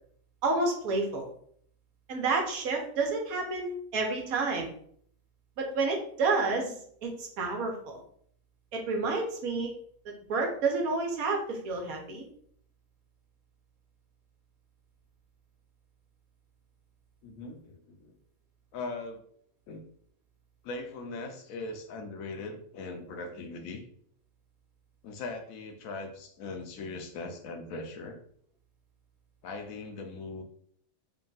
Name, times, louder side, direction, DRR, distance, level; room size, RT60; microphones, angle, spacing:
voice 1, 0.4-1.3 2.1-4.7 5.6-6.7 7.0-8.0 8.7-9.7 10.3-12.3, right 3 dB, 80° right, 2 dB, 1.3 m, -29 dB
voice 2, 17.2-18.1 18.7-19.2 19.7-19.8 20.6-23.8 25.0-28.2 29.4-30.4, left 3 dB, 75° left, 5 dB, 1.0 m, -40 dB
3.4 x 2.3 x 3.9 m, 0.63 s
omnidirectional pair, 1.5 m